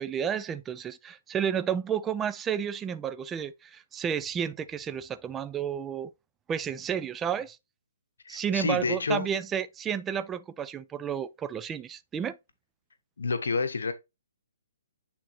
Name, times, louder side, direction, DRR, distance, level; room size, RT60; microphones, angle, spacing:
voice 1, 0.0-6.1 6.5-7.6 8.3-12.4, right 8 dB, 15° right, 0.3 m, -31 dB
voice 2, 8.2-9.3 13.2-13.9, left 4 dB, 80° left, 0.9 m, -29 dB
8.7 x 3.8 x 2.8 m
hypercardioid pair, 150°, 0 cm